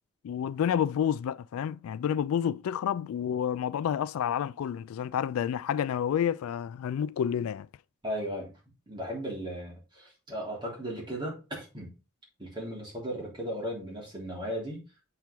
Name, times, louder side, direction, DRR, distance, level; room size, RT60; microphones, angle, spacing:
voice 1, 0.2-7.7, left 9 dB, 85° left, 0.3 m, -29 dB
voice 2, 8.0-8.5 8.9-11.9 12.4-14.8, equal, 20° right, 3.3 m, -36 dB
7.5 x 4.5 x 3.4 m
head